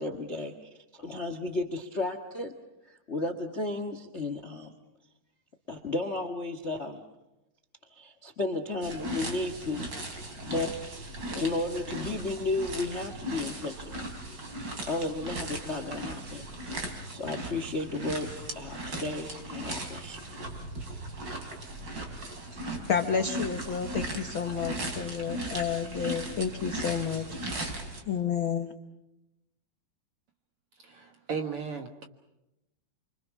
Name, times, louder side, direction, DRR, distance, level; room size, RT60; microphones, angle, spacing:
voice 1, 0.0-2.6 2.8-4.7 5.7-7.0 7.9-14.0 14.9-16.5 17.1-18.3 18.5-20.3, left 2 dB, 50° left, 8 dB, 0.8 m, -34 dB
sound 1, 8.8-28.0, right 1 dB, 30° right, 3.8 m, -38 dB
voice 2, 22.9-27.4 28.1-28.7, left 7 dB, 85° left, 6 dB, 1.1 m, -30 dB
voice 3, 30.9-32.0, right 5 dB, 55° right, 5 dB, 1.8 m, -35 dB
29.0 x 25.0 x 5.9 m, 0.91 s
omnidirectional pair, 4.1 m